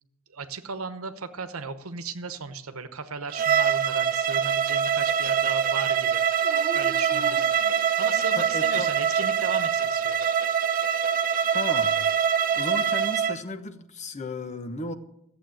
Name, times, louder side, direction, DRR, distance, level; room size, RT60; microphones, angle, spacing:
voice 1, 0.3-6.3 6.7-7.5 7.7-10.4, right 5 dB, 85° right, 10 dB, 1.0 m, -36 dB
Bowed string instrument, 3.3-13.4, right 8 dB, 40° right, 0.7 m, -24 dB
Dog, 6.4-8.3 9.0-9.8 12.0-12.9, right 4 dB, 25° right, 1.2 m, -44 dB
voice 2, 8.4-8.9 11.5-12.0 12.5-14.9, left 2 dB, 35° left, 9 dB, 1.0 m, -34 dB
14.0 x 8.0 x 7.7 m, 0.77 s
head